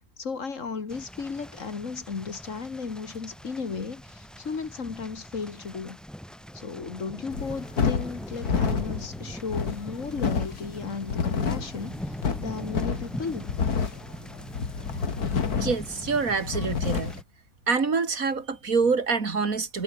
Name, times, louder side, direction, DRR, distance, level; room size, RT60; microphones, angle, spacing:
voice 1, 0.2-6.0 6.5-13.5, left 5 dB, 55° left, 2.3 m, -35 dB
sound 1, 0.9-17.2, equal, ahead, 6.0 m, -41 dB
sound 2, 7.3-17.2, left 6 dB, 75° left, 2.5 m, -29 dB
voice 2, 15.6-17.1 17.7-19.8, right 4 dB, 65° right, 3.0 m, -26 dB
omnidirectional pair, 1.6 m